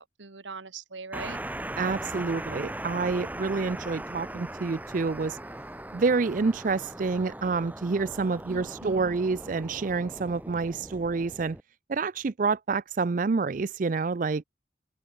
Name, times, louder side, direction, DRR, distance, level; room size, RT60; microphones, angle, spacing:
voice 1, 0.0-1.4 8.5-9.2, right 4 dB, 90° right, 1.5 m, -41 dB
sound 1, 1.1-11.6, right 1 dB, 10° right, 1.2 m, -39 dB
voice 2, 1.8-5.4 5.9-11.6 11.9-14.4, right 4 dB, 45° right, 0.4 m, -28 dB
open air
head